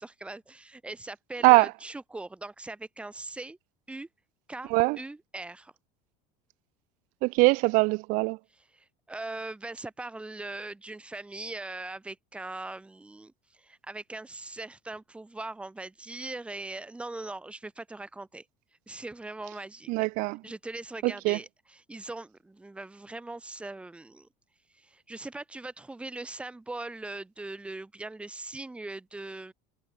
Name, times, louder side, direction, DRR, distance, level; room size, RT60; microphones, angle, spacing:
voice 1, 0.0-3.6 3.9-4.1 4.5-5.7 8.5-18.5 18.9-19.9 20.4-24.3 24.7-29.5, right 2 dB, 5° right, 3.7 m, -40 dB
voice 2, 7.2-8.4 19.9-20.4 21.0-21.4, right 25 dB, 60° right, 0.8 m, -22 dB
cardioid pair, 155°, 16 cm